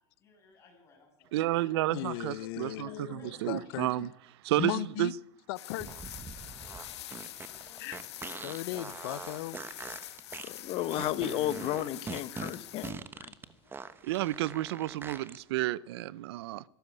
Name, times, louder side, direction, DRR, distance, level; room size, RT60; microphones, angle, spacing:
voice 1, 0.2-2.3 2.6-4.0 7.4-8.0, left 3 dB, 20° left, 7.8 m, -58 dB
voice 2, 1.3-2.9 3.4-4.1 4.4-5.1 14.0-16.6, right 16 dB, 70° right, 0.7 m, -31 dB
voice 3, 1.9-4.1 4.6-5.1 5.5-5.9 7.8-8.0 8.3-9.6, left 17 dB, 60° left, 0.8 m, -37 dB
sound 1, 5.6-12.9, left 13 dB, 80° left, 1.8 m, -45 dB
sound 2, 5.7-15.4, right 5 dB, 15° right, 1.1 m, -43 dB
voice 4, 10.4-13.3, left 13 dB, 40° left, 1.2 m, -33 dB
24.0 x 13.0 x 9.7 m
supercardioid pair, 130°, 14 cm